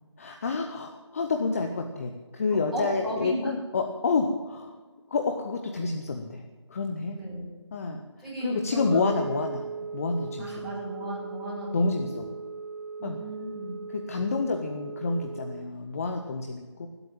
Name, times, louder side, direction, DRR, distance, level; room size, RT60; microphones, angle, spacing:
voice 1, 0.2-4.8 5.1-6.4 6.7-7.2 7.7-8.0 8.4-9.6 9.9-10.7 11.7-12.3 13.0-13.2 13.9-16.9, left 4 dB, 30° left, 4 dB, 1.0 m, -29 dB
voice 2, 2.5-3.5 7.1-7.5 8.2-9.2 9.7-9.8 10.4-12.2 13.0-13.7, right 1 dB, ahead, -12 dB, 5.4 m, -35 dB
Wind instrument woodwind instrument, 8.6-15.7, right 5 dB, 45° right, 0.8 m, -39 dB
18.5 x 8.1 x 8.8 m, 1.3 s
figure-of-eight pair, 155°, 15 cm